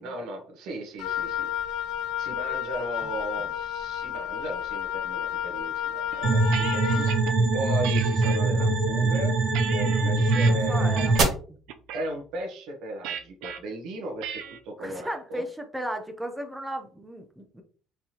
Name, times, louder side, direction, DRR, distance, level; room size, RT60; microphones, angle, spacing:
voice 1, 0.0-1.5 2.2-7.2 7.5-9.3 9.7-10.9 11.9-15.4, right 1 dB, 70° right, 1 dB, 1.1 m, -36 dB
Wind instrument woodwind instrument, 1.0-7.2, left 9 dB, 80° left, 0.5 m, -31 dB
sound 1, 6.1-7.3 7.8-8.4 9.0-10.5 11.0-11.4 11.7-12.1 13.0-13.6 14.2-14.6, right 9 dB, 85° right, 0.5 m, -36 dB
sound 2, 6.2-11.2, right 3 dB, 45° right, 1.8 m, -23 dB
voice 2, 10.5-11.4 14.8-17.6, right 1 dB, 5° right, 5 dB, 0.6 m, -35 dB
4.5 x 3.4 x 2.9 m, 0.41 s
cardioid pair, 165°, 0 cm